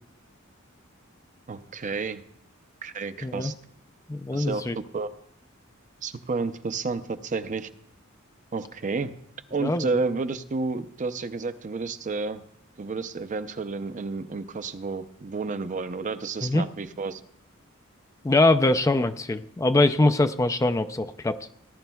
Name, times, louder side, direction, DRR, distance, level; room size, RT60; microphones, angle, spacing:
voice 1, 1.5-2.2 2.8-3.5 4.3-4.6 4.9-5.1 6.0-7.7 8.5-9.1 9.5-12.4 12.8-17.2, right 4 dB, 40° right, 10 dB, 0.5 m, -31 dB
voice 2, 4.1-4.8 9.6-9.9 16.4-16.6 18.2-21.4, left 2 dB, 15° left, 10 dB, 0.4 m, -22 dB
18.0 x 11.5 x 2.3 m, 0.72 s
head